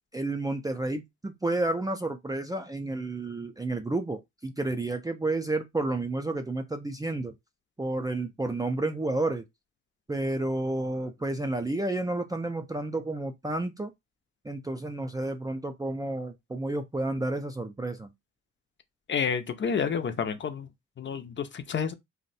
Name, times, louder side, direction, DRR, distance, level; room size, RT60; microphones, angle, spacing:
voice 1, 0.1-7.3 7.8-9.4 10.1-13.9 14.4-18.1, right 2 dB, 10° right, 0.4 m, -31 dB
voice 2, 19.1-20.7 21.0-21.9, left 6 dB, 40° left, 0.6 m, -29 dB
2.6 x 2.1 x 4.0 m
cardioid pair, 90°, 30 cm